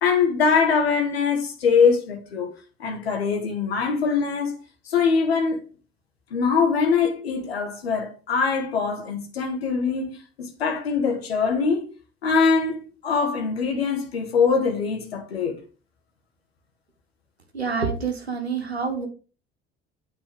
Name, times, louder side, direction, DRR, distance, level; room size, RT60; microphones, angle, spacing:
voice 1, 0.0-2.5 2.8-4.5 4.9-5.6 6.3-11.9 12.2-15.6, left 5 dB, 75° left, 1.7 m, -23 dB
voice 2, 17.5-19.1, right 5 dB, 85° right, 1.1 m, -27 dB
9.1 x 4.3 x 6.1 m
figure-of-eight pair, 55°, 31 cm